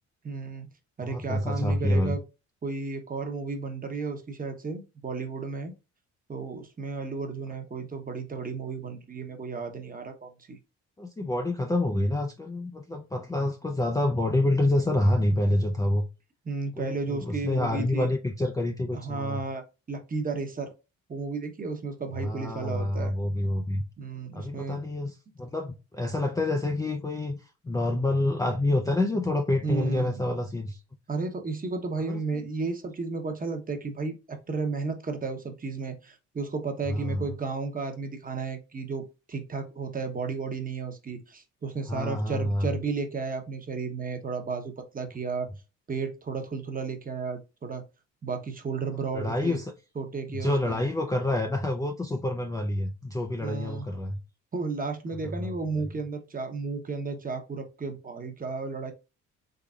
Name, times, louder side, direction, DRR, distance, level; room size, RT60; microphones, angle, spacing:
voice 1, 0.2-0.7 1.0-2.2 2.6-5.7 6.3-10.6 16.5-18.1 18.9-20.7 21.1-23.2 24.0-24.8 29.6-30.2 31.1-45.5 45.9-47.8 48.2-49.6 50.0-50.8 53.4-53.9 54.5-58.9, right 4 dB, 30° right, 0.9 m, -33 dB
voice 2, 1.0-2.2 11.0-16.0 16.8-19.4 22.2-23.8 24.3-30.8 32.1-32.4 36.9-37.3 41.9-42.7 49.1-49.7 50.3-54.2 55.2-55.5, left 1 dB, 10° left, 0.4 m, -27 dB
3.7 x 3.3 x 2.3 m
cardioid pair, 90°, 30 cm